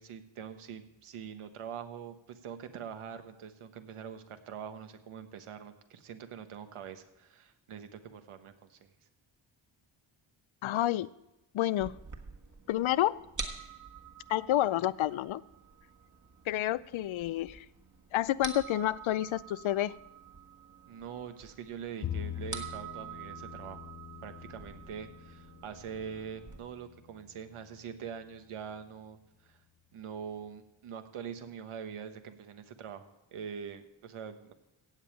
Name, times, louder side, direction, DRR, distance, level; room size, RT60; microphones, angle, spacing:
voice 1, 0.0-8.9 20.9-23.9 24.2-29.6 29.9-34.5, right 7 dB, 85° right, 8 dB, 1.3 m, -44 dB
voice 2, 10.6-11.1 11.5-12.0 12.7-13.2 14.3-15.4 16.5-17.7 18.1-19.9, left 13 dB, 75° left, 19 dB, 0.6 m, -29 dB
sound 1, 11.8-26.6, right 5 dB, 35° right, 1.6 m, -47 dB
Bowed string instrument, 22.0-28.4, left 10 dB, 35° left, 0.7 m, -44 dB
15.5 x 5.3 x 8.8 m, 0.94 s
cardioid pair, 90°, 49 cm